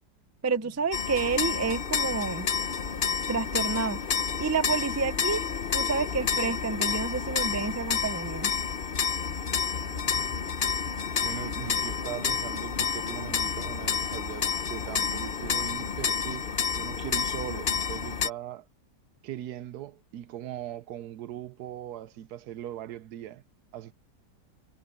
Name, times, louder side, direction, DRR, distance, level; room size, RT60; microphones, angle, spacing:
voice 1, 0.4-2.5 3.3-4.0 4.4-5.4 5.7-8.5, right 4 dB, 20° right, 0.5 m, -29 dB
sound 1, 0.9-18.3, left 6 dB, 40° left, 1.0 m, -30 dB
voice 2, 9.8-10.3 11.2-18.7 19.2-23.4 23.7-23.9, right 12 dB, 75° right, 1.2 m, -40 dB
omnidirectional pair, 1.7 m